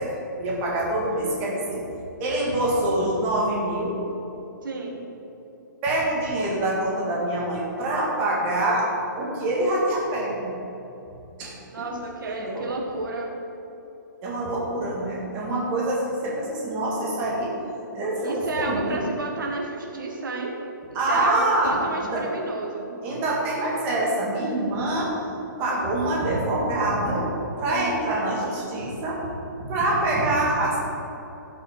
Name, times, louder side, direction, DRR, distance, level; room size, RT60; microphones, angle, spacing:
voice 1, 0.0-1.8 2.2-4.0 5.8-8.9 9.2-10.5 11.4-11.5 12.3-12.6 14.2-17.5 17.9-19.0 20.9-22.3 23.0-25.1 25.6-27.3 27.6-29.3 29.6-30.8, right 1 dB, 15° right, -4 dB, 1.8 m, -25 dB
voice 2, 4.6-5.0 11.7-13.3 18.2-20.6 20.9-22.9 27.7-28.0, right 2 dB, 75° right, 0 dB, 1.5 m, -31 dB
16.0 x 5.5 x 4.5 m, 3.0 s
hypercardioid pair, 170°, 11 cm